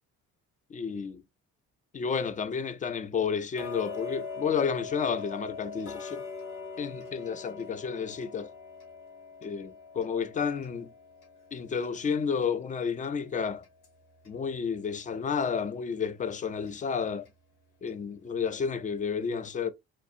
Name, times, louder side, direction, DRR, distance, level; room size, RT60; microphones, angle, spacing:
voice 1, 0.7-1.2 1.9-6.2 6.8-8.5 9.4-10.9 11.5-13.6 14.3-17.3 17.8-19.7, left 6 dB, 20° left, 0.4 m, -31 dB
Tick-tock, 3.6-14.4 14.8-14.9 15.5-15.6 16.0-16.1 16.7-16.8 17.3-17.4 17.9-18.0 18.5-18.6, left 5 dB, 80° left, 1.5 m, -43 dB
4.1 x 2.5 x 2.4 m
figure-of-eight pair, 45°, 42 cm